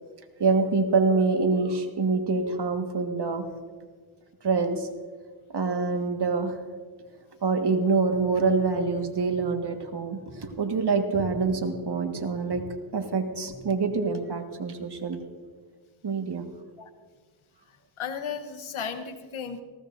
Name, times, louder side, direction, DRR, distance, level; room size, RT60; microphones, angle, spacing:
voice 1, 0.4-3.5 4.4-4.9 5.5-6.6 7.4-12.6 12.9-15.2 16.0-16.4, right 4 dB, 55° right, 5 dB, 1.6 m, -25 dB
voice 2, 18.0-19.6, left 6 dB, 75° left, 9 dB, 1.1 m, -34 dB
19.0 x 16.5 x 2.6 m, 1.5 s
cardioid pair, 55°, 49 cm